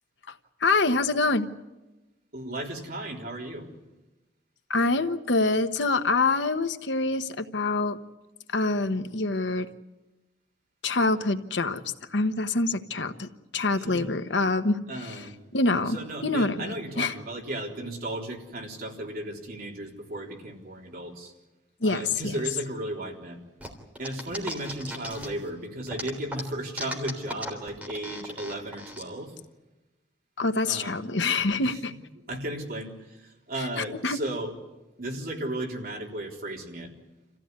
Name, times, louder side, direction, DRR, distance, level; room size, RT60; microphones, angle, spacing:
voice 1, 0.6-1.5 4.7-8.0 8.5-9.7 10.8-11.8 12.1-13.3 13.5-14.8 15.5-16.0 16.2-17.1 21.8-22.3 30.4-31.9 34.0-34.2, left 3 dB, 85° left, 8 dB, 1.2 m, -25 dB
voice 2, 2.3-3.7 13.8-14.1 14.9-15.4 15.9-21.3 21.8-23.4 24.0-29.3 30.7-31.0 31.6-32.0 32.3-34.5 35.0-36.9, right 1 dB, 55° right, 0 dB, 3.8 m, -35 dB
sound 1, 23.6-25.5 25.9-29.0, equal, 10° right, 3.5 m, -37 dB
27.5 x 15.5 x 9.6 m, 1.1 s
head